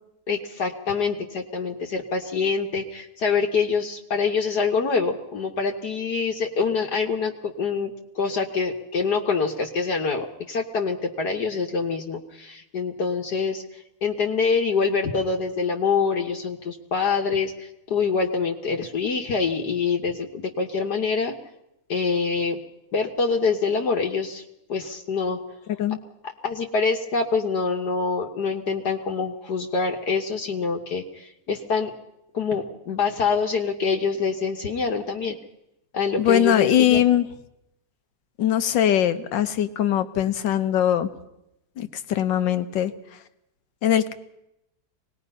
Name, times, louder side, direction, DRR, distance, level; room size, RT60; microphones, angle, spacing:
voice 1, 0.3-13.6 14.0-21.3 21.9-22.6 22.9-24.4 24.7-25.4 26.4-31.9 32.3-35.4 35.9-37.1, left 5 dB, 65° left, 2 dB, 1.8 m, -25 dB
voice 2, 36.2-37.3 38.4-41.1 41.8-42.9 43.8-44.1, left 10 dB, 85° left, 11 dB, 1.7 m, -21 dB
24.5 x 19.5 x 5.5 m, 0.87 s
omnidirectional pair, 2.0 m